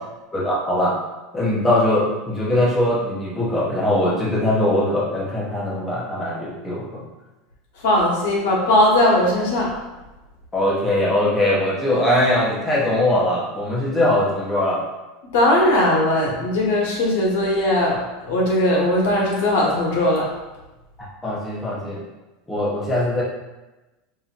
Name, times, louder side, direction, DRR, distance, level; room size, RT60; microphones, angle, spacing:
voice 1, 0.3-0.9 1.3-7.1 10.5-14.8 21.0-22.0 22.5-23.2, left 1 dB, 10° left, -7 dB, 0.8 m, -21 dB
voice 2, 7.8-9.7 15.3-20.3, left 1 dB, 80° left, -3 dB, 1.3 m, -19 dB
5.3 x 2.8 x 2.5 m, 1.1 s
supercardioid pair, 160°, 0 cm